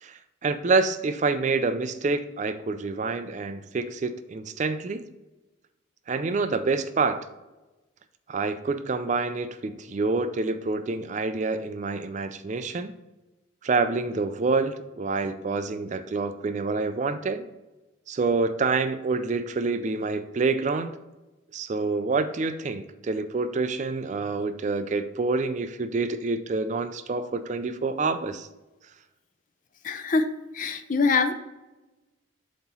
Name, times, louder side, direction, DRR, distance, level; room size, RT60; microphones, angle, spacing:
voice 1, 0.0-5.0 6.1-7.3 8.3-12.9 13.6-17.5 18.1-21.0 21.5-28.5, right 3 dB, 35° right, 10 dB, 0.4 m, -27 dB
voice 2, 29.8-30.3 30.5-31.3, left 4 dB, 40° left, 9 dB, 0.5 m, -23 dB
7.3 x 3.0 x 5.5 m, 1.1 s
head